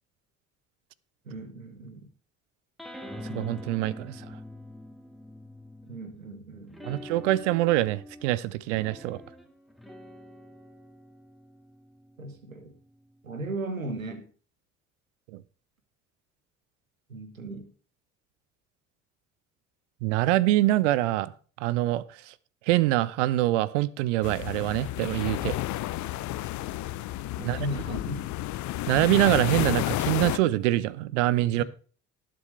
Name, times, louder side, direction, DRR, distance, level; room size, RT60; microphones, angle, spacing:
voice 1, 1.2-2.1 5.8-7.3 12.2-12.7 13.2-14.3 17.1-17.7 27.3-28.3 31.6-31.7, right 2 dB, 85° right, 1.4 m, -37 dB
sound 1, 2.8-6.2 6.7-13.5, left 1 dB, ahead, 2.0 m, -45 dB
voice 2, 3.2-4.2 6.9-9.2 15.3-15.4 20.0-21.3 21.6-22.3 22.7-25.6 27.5-27.6 28.9-31.6, right 16 dB, 65° right, 0.7 m, -25 dB
sound 2, 24.2-30.4, left 15 dB, 45° left, 0.7 m, -31 dB
18.5 x 7.7 x 3.3 m
figure-of-eight pair, 50°, 40 cm